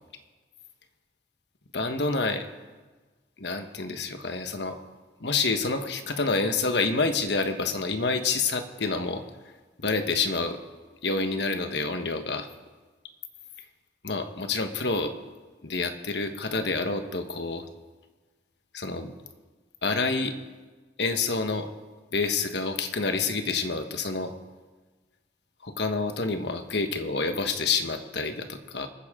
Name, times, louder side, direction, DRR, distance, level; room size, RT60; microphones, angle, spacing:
voice 1, 1.7-2.5 3.4-4.8 5.2-9.2 9.8-10.6 11.0-12.5 14.0-15.1 15.6-17.6 18.7-19.1 19.8-20.3 21.0-21.7 22.1-24.3 25.6-28.9, left 3 dB, 70° left, 7 dB, 1.3 m, -28 dB
26.5 x 9.9 x 3.7 m, 1.3 s
head